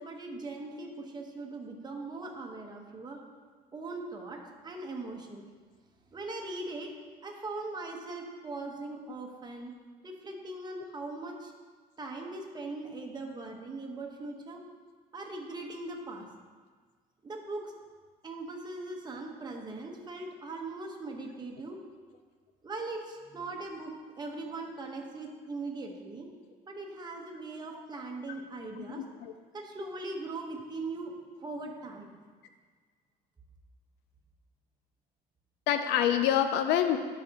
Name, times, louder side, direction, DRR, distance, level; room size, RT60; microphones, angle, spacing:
voice 1, 0.0-3.2 3.7-5.5 6.1-6.9 7.2-9.7 10.0-11.5 12.0-14.6 15.1-16.3 17.2-17.7 18.2-21.8 22.6-26.3 26.7-29.0 29.5-31.1 31.4-32.1, right 2 dB, 25° right, 0 dB, 1.2 m, -40 dB
voice 2, 28.8-29.3 35.7-37.0, left 10 dB, 90° left, 8 dB, 0.5 m, -27 dB
12.5 x 5.0 x 2.9 m, 1.5 s
cardioid pair, 110°, 17 cm